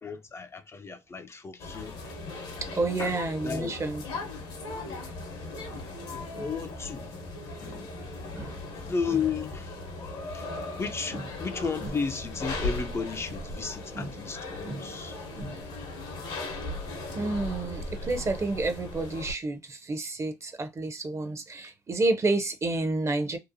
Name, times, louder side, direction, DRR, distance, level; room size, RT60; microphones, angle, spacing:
voice 1, 0.0-2.1 3.0-3.2 3.4-3.7 6.1-7.1 7.5-7.9 8.9-9.7 10.3-10.5 10.8-15.2, left 5 dB, 30° left, 0.3 m, -34 dB
sound 1, 1.6-19.3, left 2 dB, 70° left, 0.8 m, -38 dB
voice 2, 2.7-4.0 5.7-5.8 6.3-6.5 8.4-8.6 11.1-11.2 11.8-11.9 14.0-14.1 14.6-14.9 15.4-15.6 17.1-23.4, right 2 dB, 30° right, 0.5 m, -30 dB
2.7 x 2.0 x 2.6 m
hypercardioid pair, 55°, 9 cm